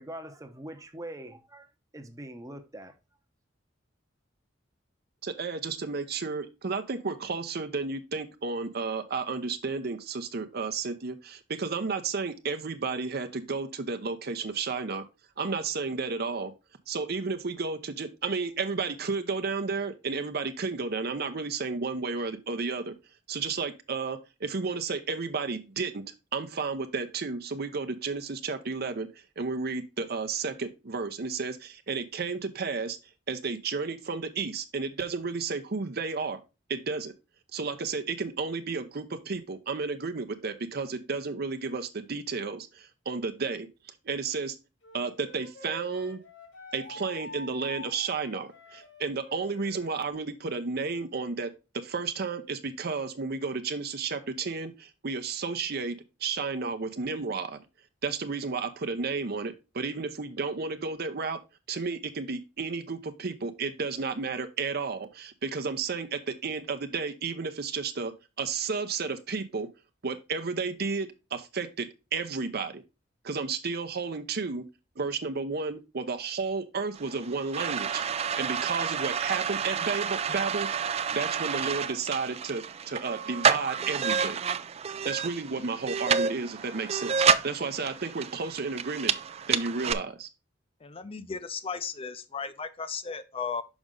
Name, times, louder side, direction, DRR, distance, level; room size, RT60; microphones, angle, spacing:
voice 1, 0.0-2.9, right 1 dB, 20° right, 0.8 m, -43 dB
voice 2, 5.2-15.0 15.4-16.5 16.9-22.9 23.3-26.0 26.3-29.1 29.4-33.0 33.3-36.4 36.7-37.1 37.5-43.7 44.0-44.6 44.9-46.2 46.7-55.9 56.2-57.6 58.0-61.4 61.7-69.7 70.0-72.8 73.2-74.6 75.0-78.0 78.4-84.4 85.0-89.1 89.5-90.3, right 4 dB, 55° right, 0.7 m, -32 dB
Wind instrument woodwind instrument, 44.8-50.1, left 2 dB, 85° left, 2.9 m, -46 dB
sound 1, 77.0-89.9, right 6 dB, 35° right, 0.4 m, -29 dB
voice 3, 90.8-93.6, left 5 dB, 30° left, 0.6 m, -35 dB
6.1 x 5.3 x 3.7 m
head